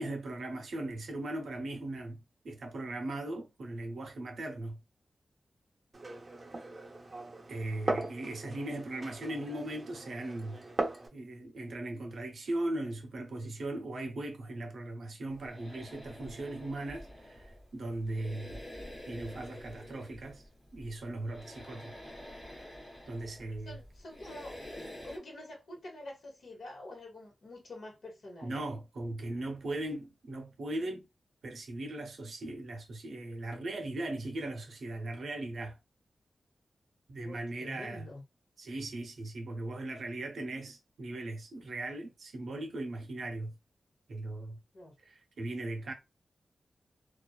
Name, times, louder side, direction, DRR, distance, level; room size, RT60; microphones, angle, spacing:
voice 1, 0.0-4.8 7.5-10.6 11.1-18.6 19.1-20.4 20.7-21.9 23.1-23.7 28.4-31.0 31.4-35.8 37.1-38.0 38.6-43.5 44.1-44.6 45.0-45.9, right 2 dB, 75° right, 0.7 m, -38 dB
Glass, 5.9-11.1, right 2 dB, 30° right, 0.6 m, -38 dB
sound 1, 15.3-25.2, left 1 dB, 30° left, 1.0 m, -48 dB
voice 2, 23.7-24.6 25.0-28.5 37.2-38.2 44.7-44.9, left 1 dB, 65° left, 1.1 m, -47 dB
2.4 x 2.3 x 2.3 m
wide cardioid pair, 175°, 0 cm